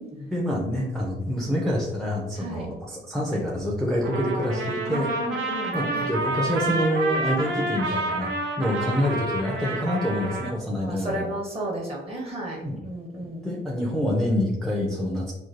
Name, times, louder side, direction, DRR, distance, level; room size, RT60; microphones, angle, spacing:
voice 1, 0.1-5.1 5.7-8.3 8.6-11.3 12.6-12.9 13.4-15.3, equal, ahead, -3 dB, 0.5 m, -26 dB
Trumpet, 4.0-10.5, right 2 dB, 80° right, 0.7 m, -29 dB
voice 2, 4.9-6.1 10.7-13.5, right 1 dB, 30° right, -2 dB, 1.0 m, -33 dB
3.1 x 2.3 x 2.5 m, 0.99 s
cardioid pair, 90°, 20 cm